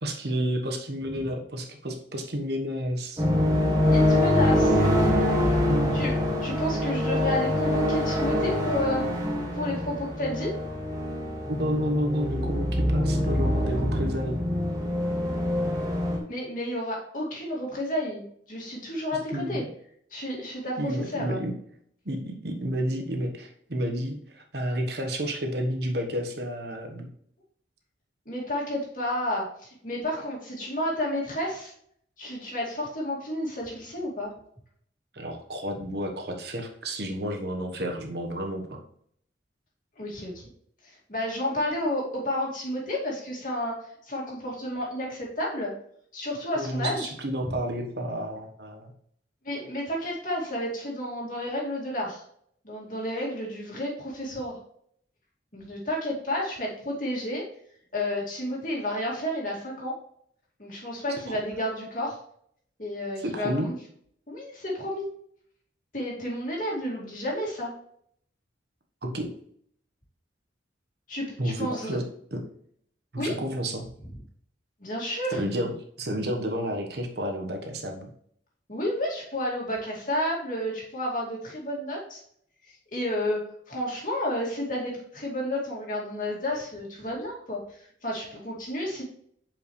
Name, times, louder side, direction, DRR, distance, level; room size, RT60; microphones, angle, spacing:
voice 1, 0.0-3.2 5.6-6.0 11.5-14.4 19.3-19.6 20.8-21.6 22.0-27.1 35.1-38.8 46.5-48.9 61.1-61.4 63.2-63.7 69.0-69.3 71.4-72.0 72.3-72.4 73.1-73.9 75.3-75.7 76.0-78.1, equal, 60° right, 3 dB, 1.2 m, -30 dB
sound 1, 3.2-16.2, left 1 dB, 20° right, 1.5 m, -25 dB
voice 2, 3.9-4.8 5.9-6.1 6.4-9.0 9.5-10.5 16.3-19.6 20.1-21.4 28.3-31.7 32.2-34.3 40.0-40.4 40.8-45.8 46.1-47.1 47.4-47.6 49.4-52.2 52.6-54.6 55.5-57.5 57.9-60.0 60.6-62.2 62.8-63.7 64.3-65.1 65.9-67.7 71.1-72.0 73.2-73.4 74.8-75.4 78.7-82.2 82.7-89.0, left 1 dB, 45° left, -3 dB, 2.4 m, -31 dB
7.7 x 5.4 x 3.2 m, 0.66 s
head